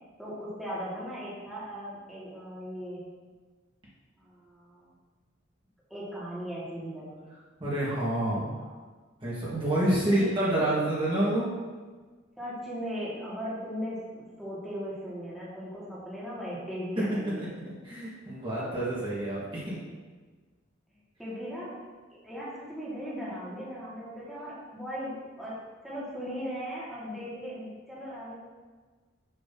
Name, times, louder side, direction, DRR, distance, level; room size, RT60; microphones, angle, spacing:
voice 1, 0.2-3.0 4.2-4.9 5.9-7.3 8.3-8.8 9.8-10.3 12.4-17.5 21.2-21.8 22.2-25.6 25.8-28.4, equal, ahead, -9 dB, 1.5 m, -38 dB
voice 2, 7.6-8.5 9.2-11.5 17.0-17.1 17.4-19.8, right 1 dB, 25° right, -7 dB, 1.4 m, -28 dB
6.7 x 3.0 x 5.8 m, 1.4 s
head